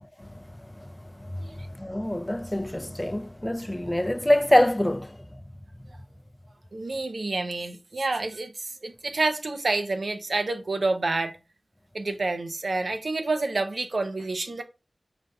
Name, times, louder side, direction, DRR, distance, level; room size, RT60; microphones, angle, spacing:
voice 1, 0.2-5.2, left 1 dB, 15° left, 0.4 m, -26 dB
voice 2, 6.7-11.4 11.9-14.6, right 3 dB, 90° right, 0.6 m, -28 dB
5.0 x 2.3 x 3.7 m
wide cardioid pair, 60°, 0 cm